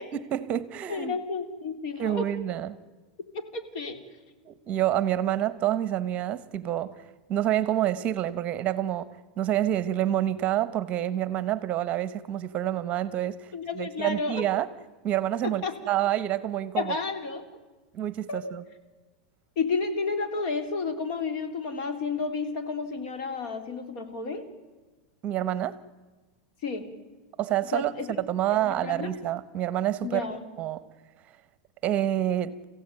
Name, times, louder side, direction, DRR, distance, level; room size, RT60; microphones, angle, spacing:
voice 1, 0.1-1.1 2.0-2.8 4.4-7.0 7.3-14.7 15.0-16.9 17.9-18.6 25.2-25.8 27.4-27.9 28.2-30.3 30.6-30.9 31.8-32.6, right 12 dB, 30° right, 1.1 m, -28 dB
voice 2, 0.9-2.3 3.3-4.0 13.5-14.5 15.4-15.8 16.8-17.4 18.3-18.5 19.6-24.5 26.6-26.9 27.7-28.1 28.6-29.1 30.0-30.4, left 4 dB, 55° left, 3.7 m, -31 dB
29.0 x 16.0 x 9.2 m
supercardioid pair, 140°, 4 cm